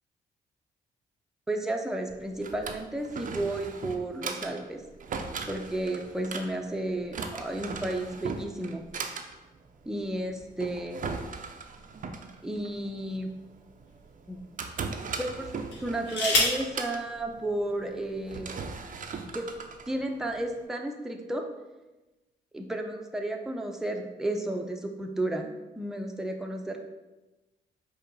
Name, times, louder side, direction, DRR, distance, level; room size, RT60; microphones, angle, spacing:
voice 1, 1.5-4.8 5.5-8.8 9.9-11.1 12.4-13.3 14.3-14.4 15.2-15.5 15.8-18.5 19.3-19.5 19.9-21.4 22.5-25.5 25.8-26.8, right 1 dB, 5° right, 2 dB, 0.6 m, -32 dB
Drawer open or close, 2.1-20.6, right 5 dB, 45° right, 0.5 m, -39 dB
sound 1, 11.9-13.1 13.9-14.0 15.6-16.7 17.8-17.9 18.3-18.6, left 2 dB, 75° left, 0.9 m, -29 dB
5.1 x 2.1 x 4.0 m, 1.1 s
hypercardioid pair, 45°, 19 cm